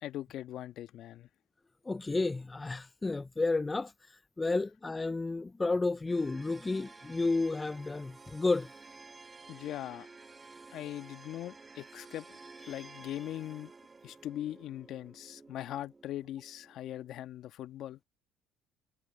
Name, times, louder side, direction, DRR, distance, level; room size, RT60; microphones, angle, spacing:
voice 1, 0.0-1.3 9.5-10.1 10.7-12.4 12.7-13.7 14.0-18.0, left 12 dB, 65° left, 1.3 m, -40 dB
voice 2, 1.9-8.7 12.6-12.8, left 3 dB, 20° left, 0.4 m, -32 dB
sound 1, 6.1-17.1, right 3 dB, 25° right, 1.5 m, -53 dB
hypercardioid pair, 70°, 0 cm